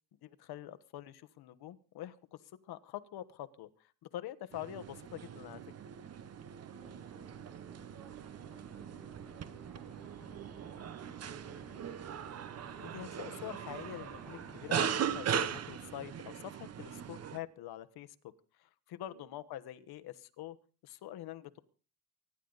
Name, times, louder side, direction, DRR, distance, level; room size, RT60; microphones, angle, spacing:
voice 1, 0.2-2.4 2.7-3.7 4.1-5.6 12.8-18.1 18.6-20.6 20.8-21.6, left 13 dB, 85° left, 12 dB, 1.2 m, -45 dB
sound 1, 4.5-17.4, right 8 dB, 40° right, 0.9 m, -39 dB
voice 2, 6.6-12.1 19.0-19.4, right 4 dB, 65° right, 3 dB, 6.9 m, -61 dB
sound 2, 6.8-16.0, left 1 dB, ahead, 0.8 m, -57 dB
25.0 x 11.5 x 4.0 m, 0.38 s
cardioid pair, 170°, 37 cm